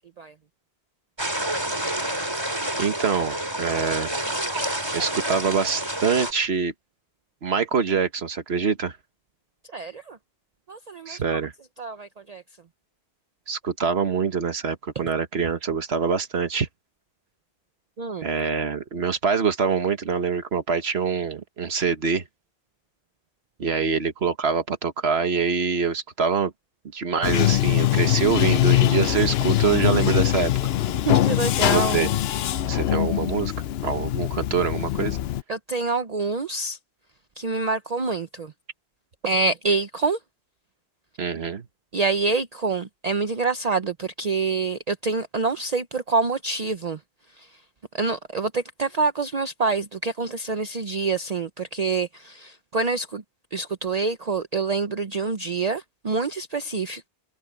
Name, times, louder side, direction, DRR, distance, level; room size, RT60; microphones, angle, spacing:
sound 1, 1.2-6.3, right 1 dB, 25° right, 4.0 m, -28 dB
voice 1, 2.8-4.1 4.5-4.6 4.9-6.7 7.4-9.0 11.1-11.5 13.5-16.7 18.2-22.2 23.6-26.5 26.9-30.5 31.6-32.1 32.6-33.5 33.8-35.2 41.2-41.7, right 6 dB, 75° right, 1.5 m, -25 dB
voice 2, 9.7-10.2 10.7-11.4 11.8-12.4 18.0-18.3 31.1-32.0 35.5-36.8 37.4-38.5 39.2-40.2 41.9-47.0 47.9-53.2 53.5-57.1, right 4 dB, 40° right, 0.8 m, -26 dB
Bathtub (filling or washing), 27.2-35.4, left 13 dB, 75° left, 0.8 m, -22 dB
omnidirectional pair, 1.1 m